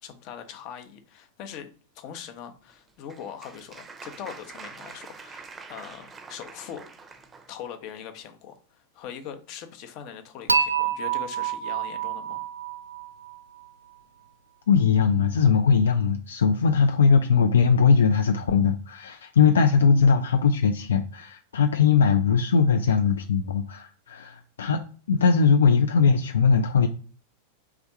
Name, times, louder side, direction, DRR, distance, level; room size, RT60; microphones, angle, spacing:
voice 1, 0.0-6.9 7.5-12.5, left 8 dB, 40° left, 0.8 m, -41 dB
Applause, 2.7-7.5, right 4 dB, 15° right, 0.6 m, -45 dB
Dishes pots and pans / Chink clink, 10.5-13.6, right 6 dB, 80° right, 0.4 m, -27 dB
voice 2, 14.7-24.8 25.1-26.9, left 5 dB, 65° left, 0.4 m, -20 dB
3.5 x 3.4 x 4.2 m
figure-of-eight pair, 90°, 0 cm